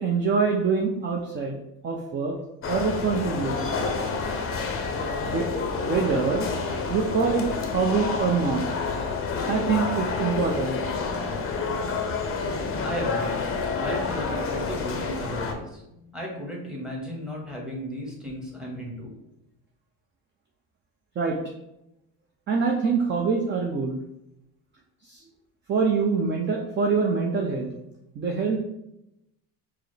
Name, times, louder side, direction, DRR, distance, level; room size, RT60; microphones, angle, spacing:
voice 1, 0.0-1.6 1.8-2.4 2.7-3.7 5.2-5.5 5.8-6.5 6.9-8.6 9.5-10.8 21.2-21.4 22.5-24.0 25.0-25.2 25.7-27.7 28.2-28.6, right 5 dB, 30° right, 0 dB, 0.4 m, -25 dB
sound 1, 2.6-15.5, left 4 dB, 35° left, 0.5 m, -29 dB
voice 2, 12.8-13.4 13.7-19.1, equal, ahead, -2 dB, 1.1 m, -35 dB
4.6 x 2.0 x 3.2 m, 0.85 s
cardioid pair, 100°, 41 cm